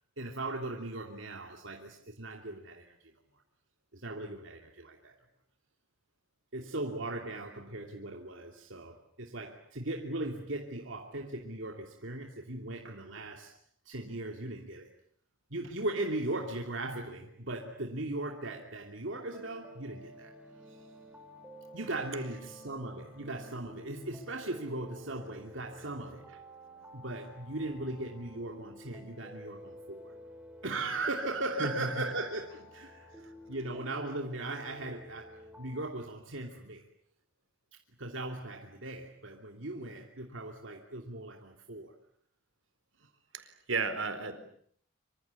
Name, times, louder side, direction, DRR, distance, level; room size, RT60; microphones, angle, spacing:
voice 1, 0.2-2.9 3.9-5.2 6.5-13.6 13.8-14.9 15.5-20.3 20.7-20.8 21.7-26.2 26.9-30.1 30.6-33.1 33.5-36.8 38.0-41.9, right 2 dB, 70° right, 2 dB, 2.9 m, -38 dB
sound 1, 19.3-35.9, left 1 dB, 5° right, 5.8 m, -52 dB
voice 2, 43.3-44.5, right 4 dB, 85° right, 9 dB, 4.5 m, -34 dB
26.0 x 26.0 x 8.4 m, 0.62 s
head